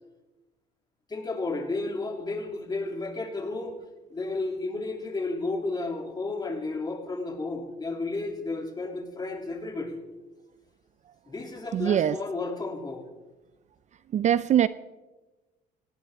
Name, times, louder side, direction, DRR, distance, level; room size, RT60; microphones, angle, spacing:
voice 1, 1.1-3.8 4.1-10.0 11.3-13.0, left 3 dB, 25° left, 3 dB, 2.9 m, -32 dB
voice 2, 11.7-12.1 14.1-14.7, right 10 dB, 45° right, 16 dB, 0.4 m, -22 dB
19.0 x 17.0 x 3.6 m, 1.1 s
cardioid pair, 110°, 17 cm